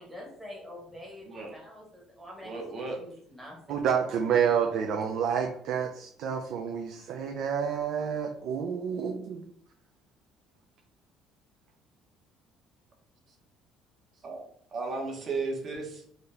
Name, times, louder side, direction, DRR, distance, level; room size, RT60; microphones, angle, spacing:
voice 1, 0.0-2.5 3.0-4.2, left 1 dB, ahead, -3 dB, 1.1 m, -46 dB
voice 2, 1.2-1.6 2.4-3.0 14.2-14.4 14.7-16.0, right 3 dB, 35° right, 0 dB, 1.0 m, -34 dB
voice 3, 3.7-9.4, right 7 dB, 60° right, 3 dB, 0.4 m, -29 dB
3.8 x 2.7 x 3.3 m, 0.62 s
cardioid pair, 155°, 0 cm